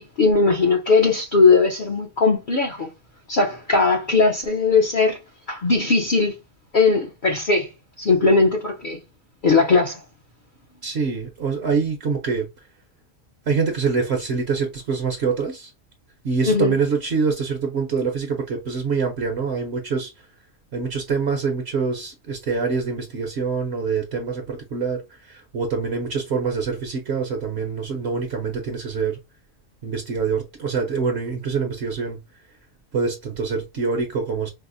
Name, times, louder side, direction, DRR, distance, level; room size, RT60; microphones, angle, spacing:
voice 1, 0.0-2.9 3.3-5.2 5.5-6.3 6.7-7.7 8.0-9.0 9.4-10.0 16.4-16.8, left 4 dB, 45° left, 0.7 m, -19 dB
voice 2, 10.8-12.5 13.5-15.7 16.2-20.2 20.7-29.2 29.8-32.2 32.9-34.5, right 5 dB, 60° right, 0.9 m, -25 dB
4.7 x 2.1 x 2.5 m
omnidirectional pair, 1.4 m